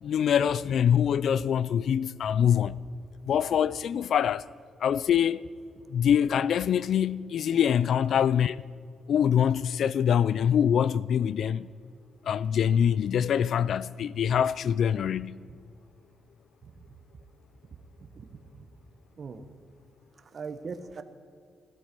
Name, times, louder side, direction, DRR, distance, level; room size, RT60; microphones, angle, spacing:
voice 1, 0.0-2.8 3.2-4.4 4.8-5.4 5.9-8.6 9.1-11.7 12.3-15.4, left 8 dB, 65° left, 0.3 m, -24 dB
voice 2, 18.0-18.7 19.2-19.4 20.3-21.0, right 5 dB, 45° right, 1.1 m, -41 dB
16.5 x 13.0 x 5.3 m
cardioid pair, 110°, 0 cm